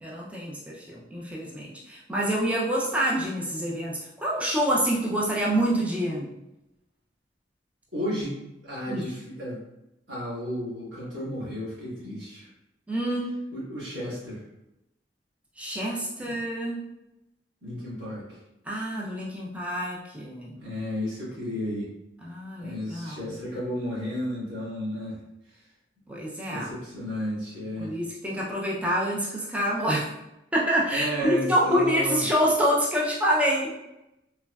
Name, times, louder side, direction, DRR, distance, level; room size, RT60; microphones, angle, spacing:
voice 1, 0.0-6.3 8.9-9.1 12.9-13.4 15.6-16.8 18.7-20.6 22.2-23.3 26.1-26.7 27.8-30.1 30.5-33.8, equal, 5° right, -5 dB, 0.3 m, -27 dB
voice 2, 7.9-9.6 10.1-12.5 13.5-14.4 16.2-16.3 17.6-18.4 20.5-21.9 22.6-25.2 25.5-25.6 26.5-27.9 30.9-32.3, equal, 80° right, -7 dB, 1.4 m, -33 dB
3.3 x 2.0 x 2.2 m, 0.90 s
head